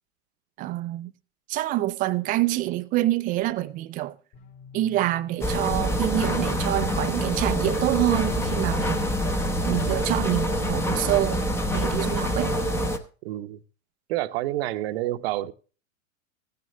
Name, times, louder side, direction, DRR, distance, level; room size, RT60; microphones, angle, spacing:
voice 1, 0.6-1.1 1.5-4.2 4.7-9.1 9.7-11.4 11.7-12.6, right 16 dB, 20° right, 0.5 m, -26 dB
sound 1, 4.3-9.9, left 11 dB, 50° left, 5.4 m, -47 dB
sound 2, 5.4-13.0, equal, 5° left, 0.8 m, -26 dB
voice 2, 13.2-13.6 14.1-15.5, right 15 dB, 50° right, 0.9 m, -28 dB
15.5 x 9.4 x 3.0 m
hypercardioid pair, 125°, 40 cm